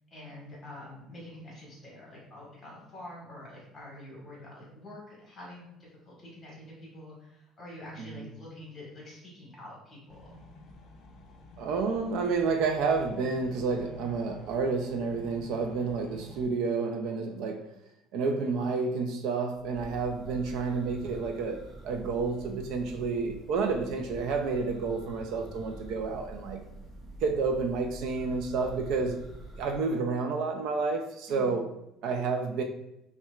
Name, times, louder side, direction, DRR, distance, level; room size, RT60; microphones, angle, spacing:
voice 1, 0.1-10.3 31.3-31.5, left 1 dB, 15° left, -5 dB, 1.4 m, -46 dB
sound 1, 10.1-16.4, left 2 dB, 40° left, 0.5 m, -50 dB
voice 2, 11.6-17.7 18.1-26.6 27.2-29.2 29.5-31.6 32.0-32.6, right 4 dB, 55° right, 4 dB, 0.3 m, -30 dB
Church bell, 19.5-29.8, right 1 dB, 10° right, 1.2 m, -46 dB
5.7 x 2.2 x 2.3 m, 0.88 s
cardioid pair, 180°, 0 cm